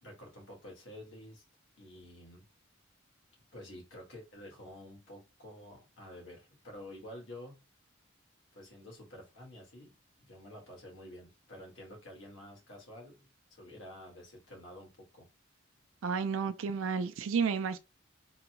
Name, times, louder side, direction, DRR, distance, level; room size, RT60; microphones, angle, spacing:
voice 1, 0.0-1.4 1.8-2.4 3.5-7.6 8.5-9.9 10.2-15.3, left 1 dB, 70° left, 1.7 m, -50 dB
voice 2, 16.0-17.8, right 5 dB, 80° right, 0.4 m, -31 dB
3.9 x 2.9 x 2.2 m
head